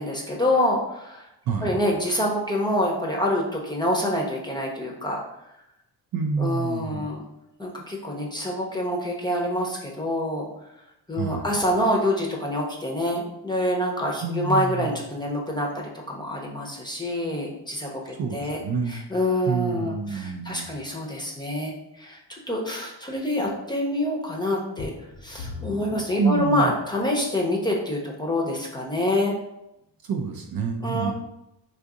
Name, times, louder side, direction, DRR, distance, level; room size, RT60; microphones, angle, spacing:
voice 1, 0.0-1.3 1.6-5.2 6.4-7.2 7.6-10.5 11.1-18.6 18.9-24.9 25.2-29.3 30.8-31.1, left 1 dB, 10° left, -2 dB, 0.7 m, -26 dB
voice 2, 1.5-1.8 6.1-7.1 11.2-11.5 14.2-15.0 18.2-19.1 19.5-20.7 26.2-26.7 30.0-31.1, right 5 dB, 55° right, 3 dB, 0.5 m, -27 dB
sound 1, 24.8-27.2 27.9-28.0 28.6-28.7, left 4 dB, 75° left, 0.9 m, -39 dB
2.5 x 2.5 x 3.7 m, 0.85 s
cardioid pair, 80°, 44 cm